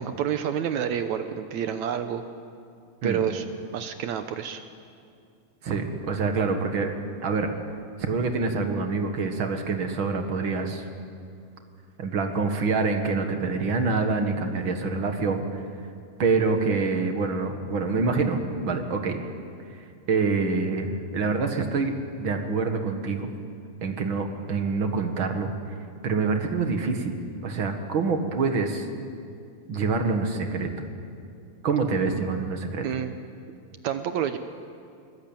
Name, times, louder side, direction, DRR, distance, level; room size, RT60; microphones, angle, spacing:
voice 1, 0.0-2.2 3.0-3.5 3.7-4.6 32.8-33.2 33.8-34.4, right 9 dB, 70° right, 8 dB, 2.0 m, -28 dB
voice 2, 5.6-6.9 7.2-7.5 8.0-10.9 12.0-15.6 16.2-19.2 20.1-23.3 23.8-25.5 26.0-28.9 29.7-30.7 31.6-32.8, right 4 dB, 45° right, 5 dB, 2.0 m, -26 dB
22.0 x 22.0 x 9.0 m, 2.4 s
omnidirectional pair, 3.8 m